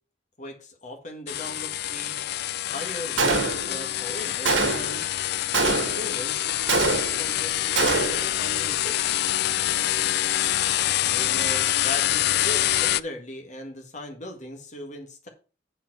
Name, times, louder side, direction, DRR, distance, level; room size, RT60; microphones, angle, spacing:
voice 1, 0.4-2.2 2.7-5.1 5.7-9.2 11.0-15.3, left 1 dB, 40° left, 3 dB, 1.7 m, -39 dB
sound 1, 1.3-13.0, left 13 dB, 60° left, 0.3 m, -26 dB
Gunshot gunfire, 3.2-3.9 4.5-5.0 5.5-6.2 6.7-7.4 7.8-8.3, right 3 dB, 80° right, 1.6 m, -24 dB
8.8 x 4.9 x 6.0 m, 0.35 s
head